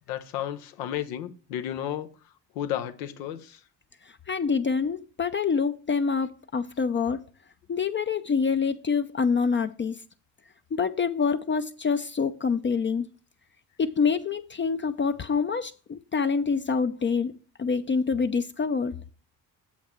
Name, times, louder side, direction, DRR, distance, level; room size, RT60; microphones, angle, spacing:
voice 1, 0.1-2.1 2.5-3.6, left 11 dB, 90° left, 0.8 m, -32 dB
voice 2, 4.1-7.2 7.7-10.0 10.7-13.1 13.8-17.3 17.6-19.0, left 5 dB, 25° left, 0.4 m, -26 dB
7.3 x 5.8 x 4.4 m
hypercardioid pair, 55°, 48 cm